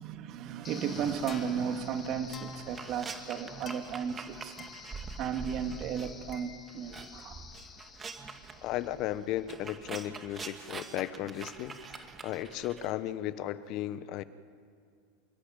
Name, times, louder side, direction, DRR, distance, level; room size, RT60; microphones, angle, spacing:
voice 1, 0.0-4.7 5.0-7.5 12.8-12.9, right 7 dB, 45° right, 7 dB, 2.3 m, -35 dB
sound 1, 0.6-9.7, left 6 dB, 30° left, 3.1 m, -50 dB
sound 2, 1.0-6.4 6.7-12.9, right 4 dB, 25° right, 2.2 m, -45 dB
voice 2, 8.6-14.2, left 13 dB, 50° left, 15 dB, 1.1 m, -35 dB
28.0 x 16.0 x 9.2 m, 2.2 s
hypercardioid pair, 90°, 0 cm